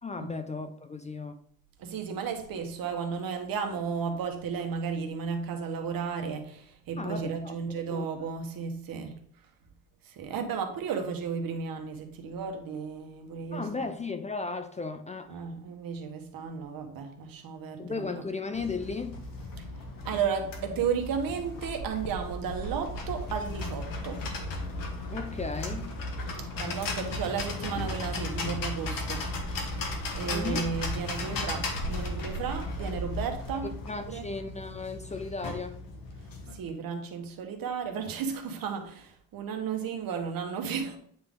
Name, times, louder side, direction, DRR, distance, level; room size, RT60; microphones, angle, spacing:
voice 1, 0.0-1.4 7.0-7.6 7.9-8.1 13.5-15.4 17.8-19.3 25.1-25.9 30.3-30.7 33.8-35.8, left 4 dB, 20° left, 0.4 m, -35 dB
voice 2, 1.8-9.2 10.0-13.9 15.3-18.3 19.6-19.7 20.0-24.3 26.4-29.3 30.1-33.7 34.1-34.2 36.5-41.0, right 6 dB, 70° right, 1.3 m, -34 dB
sound 1, 18.5-36.6, left 2 dB, 65° left, 1.5 m, -35 dB
8.7 x 3.9 x 3.6 m
cardioid pair, 110°, 37 cm